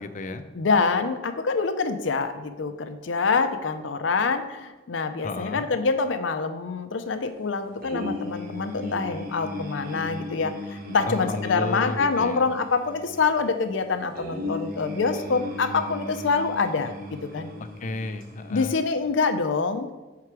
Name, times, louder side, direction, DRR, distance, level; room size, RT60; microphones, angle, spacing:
voice 1, 0.0-0.4 5.2-5.7 11.1-12.4 17.8-18.8, left 2 dB, 40° left, 10 dB, 0.5 m, -32 dB
voice 2, 0.5-16.9 17.2-17.5 18.5-19.9, left 4 dB, 85° left, 9 dB, 0.6 m, -26 dB
sound 1, 7.8-19.0, left 1 dB, 50° right, 1.0 m, -37 dB
5.8 x 4.7 x 5.9 m, 1.2 s
head